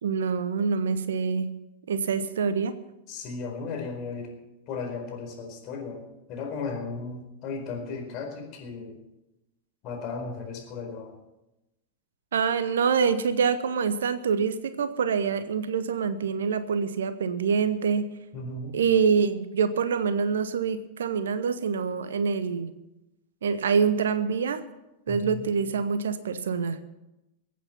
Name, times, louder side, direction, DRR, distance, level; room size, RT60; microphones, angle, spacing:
voice 1, 0.0-1.6 1.9-2.7 12.3-18.1 18.7-22.7 23.4-24.6 25.1-26.8, right 6 dB, 65° right, 13 dB, 0.9 m, -25 dB
voice 2, 3.1-4.3 4.7-6.0 6.3-8.9 9.8-11.2 18.3-18.8 25.1-25.5, left 4 dB, 40° left, 2 dB, 4.4 m, -35 dB
22.5 x 8.5 x 5.8 m, 0.94 s
figure-of-eight pair, 90°, 0 cm